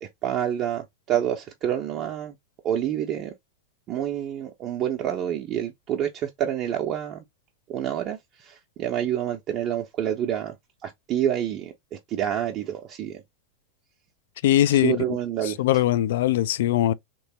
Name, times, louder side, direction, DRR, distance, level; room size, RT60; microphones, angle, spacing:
voice 1, 0.0-2.3 2.6-3.3 3.9-7.2 7.7-10.5 10.8-13.2 14.6-15.6, right 10 dB, 35° right, 0.6 m, -28 dB
voice 2, 14.4-15.0 15.6-16.9, left 13 dB, 55° left, 0.3 m, -21 dB
3.3 x 3.0 x 2.7 m
figure-of-eight pair, 90°, 0 cm